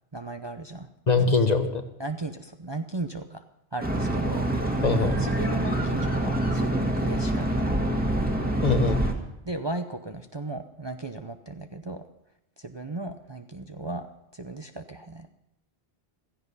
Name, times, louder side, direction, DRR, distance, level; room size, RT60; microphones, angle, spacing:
voice 1, 0.1-0.9 2.0-3.4 3.7-4.5 5.2-7.9 9.4-12.0 12.6-14.1 14.3-15.3, right 2 dB, 30° right, 6 dB, 0.7 m, -36 dB
voice 2, 1.1-1.8 4.8-5.1 8.6-9.0, left 4 dB, 40° left, 7 dB, 1.3 m, -22 dB
sound 1, 3.8-9.1, right 1 dB, 10° right, 1.8 m, -26 dB
16.0 x 14.5 x 5.5 m, 0.83 s
omnidirectional pair, 1.1 m